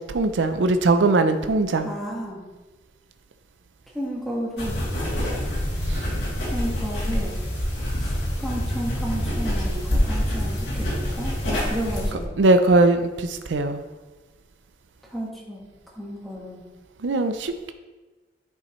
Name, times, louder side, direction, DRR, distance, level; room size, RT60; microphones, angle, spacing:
voice 1, 0.1-1.9 5.9-6.0 12.4-13.8 17.0-17.7, right 2 dB, 90° right, 8 dB, 0.5 m, -20 dB
voice 2, 1.8-2.4 3.9-4.8 6.5-7.4 8.0-12.3 15.1-15.6 16.0-16.6, equal, ahead, -4 dB, 1.5 m, -32 dB
sound 1, 4.6-12.1, equal, 85° left, 2.6 m, -26 dB
10.0 x 5.4 x 3.1 m, 1.2 s
head